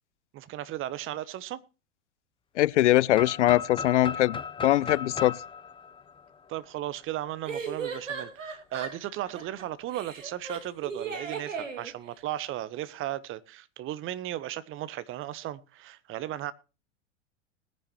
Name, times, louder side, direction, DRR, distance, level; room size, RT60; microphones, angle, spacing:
voice 1, 0.3-1.6 6.5-16.5, right 13 dB, 35° right, 1.0 m, -36 dB
voice 2, 2.6-5.4, left 15 dB, 70° left, 0.5 m, -22 dB
sound 1, 3.1-7.0, left 5 dB, 15° left, 0.8 m, -36 dB
sound 2, 5.1-5.2 7.5-9.6 9.9-11.9, right 5 dB, 85° right, 2.6 m, -37 dB
20.0 x 9.9 x 3.0 m
hypercardioid pair, 90°, 37 cm